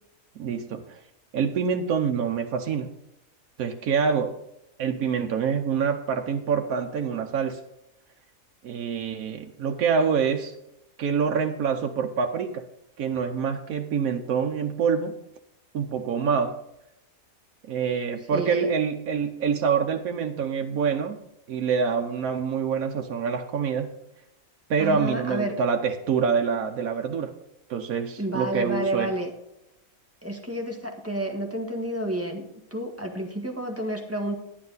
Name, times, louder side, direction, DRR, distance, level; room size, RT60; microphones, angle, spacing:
voice 1, 0.4-1.0 1.3-2.9 3.6-4.4 4.8-7.6 8.6-10.5 11.0-12.6 13.0-15.1 15.7-16.6 17.7-21.2 21.5-23.9 24.7-27.3 27.7-29.1, right 6 dB, 85° right, 4 dB, 1.3 m, -26 dB
voice 2, 18.3-18.7 24.8-25.6 28.2-29.3 30.2-32.4 32.7-34.3, right 1 dB, 10° right, 1 dB, 1.6 m, -30 dB
10.0 x 10.0 x 4.0 m, 0.85 s
omnidirectional pair, 1.5 m